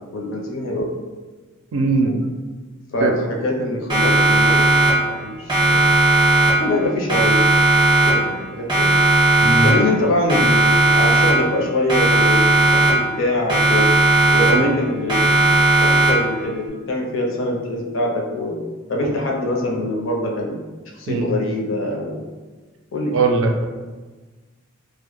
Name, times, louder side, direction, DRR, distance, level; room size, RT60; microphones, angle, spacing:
voice 1, 0.1-0.9 2.0-2.1 2.9-5.9 6.5-7.4 8.0-8.9 9.6-13.9 14.3-18.6 18.9-20.6 20.9-22.2 22.9-23.3, left 1 dB, 70° left, -1 dB, 0.5 m, -24 dB
voice 2, 1.7-2.1 3.0-3.1 9.4-9.7 14.5-14.7 21.1-21.2 23.1-23.6, right 3 dB, 75° right, 3 dB, 0.4 m, -19 dB
Siren, 3.9-5.2 5.5-6.8 7.1-8.4 8.7-10.0 10.3-11.6 11.9-13.2 13.5-14.8 15.1-16.4, right 2 dB, 20° right, 0.6 m, -16 dB
2.1 x 2.1 x 2.9 m, 1.3 s
head